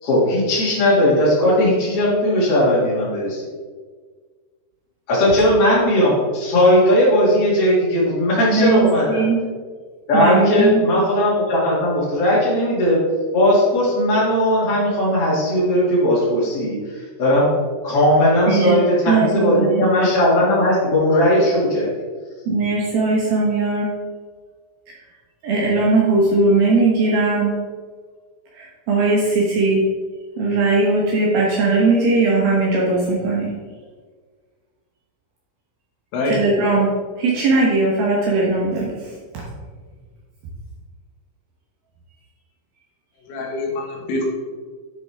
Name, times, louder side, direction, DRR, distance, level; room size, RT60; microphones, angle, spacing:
voice 1, 0.0-3.4 5.1-9.3 10.1-13.0 13.3-17.5 17.8-21.9, left 1 dB, 45° left, -9 dB, 2.1 m, -17 dB
voice 2, 8.5-9.4 10.1-10.8 18.5-19.9 22.5-23.9 25.4-27.6 28.5-29.8 30.4-33.5 36.3-36.9 37.2-38.9, right 3 dB, 70° right, -4 dB, 2.4 m, -19 dB
voice 3, 36.1-36.5 43.3-44.2, left 2 dB, 80° left, 0 dB, 3.9 m, -24 dB
10.5 x 6.2 x 3.5 m, 1.5 s
omnidirectional pair, 5.6 m